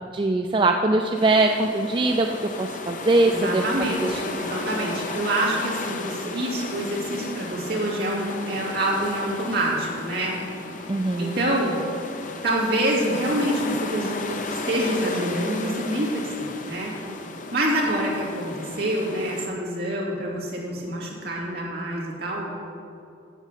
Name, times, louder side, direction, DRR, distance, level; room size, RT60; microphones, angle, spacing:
voice 1, 0.1-2.3 2.6-3.6 4.0-4.2 10.9-11.4, right 2 dB, 25° right, 4 dB, 0.4 m, -21 dB
sound 1, 1.1-19.5, left 3 dB, 40° left, 0.7 m, -35 dB
voice 2, 3.2-10.3 10.8-10.9 11.2-11.7 12.4-16.9 17.5-22.5, right 1 dB, 55° right, -4 dB, 2.5 m, -26 dB
8.2 x 7.4 x 7.5 m, 2.6 s
head